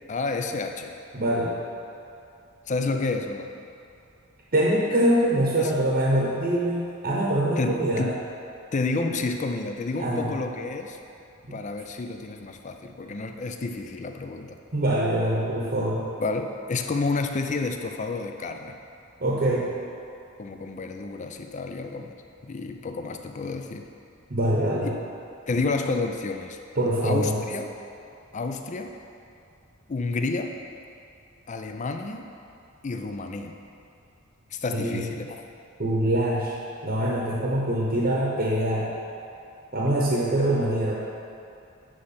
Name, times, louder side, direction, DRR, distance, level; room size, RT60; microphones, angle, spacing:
voice 1, 0.0-0.9 2.7-3.5 5.6-5.7 7.6-8.2 8.7-11.0 11.5-14.6 16.2-18.8 20.4-22.1 22.4-23.9 24.8-24.9 25.5-26.6 27.0-27.7 28.3-29.0 29.9-30.5 31.5-32.3 32.8-33.5 34.5-35.5, left 3 dB, 35° left, 5 dB, 0.4 m, -30 dB
voice 2, 1.1-1.5 4.5-8.1 10.0-10.3 11.5-11.6 14.7-16.1 19.2-19.7 24.3-24.9 26.8-27.4 34.7-35.0 35.8-36.5 36.8-38.9 39.7-41.0, right 1 dB, 45° right, -5 dB, 0.9 m, -24 dB
9.7 x 3.3 x 5.7 m, 2.6 s
head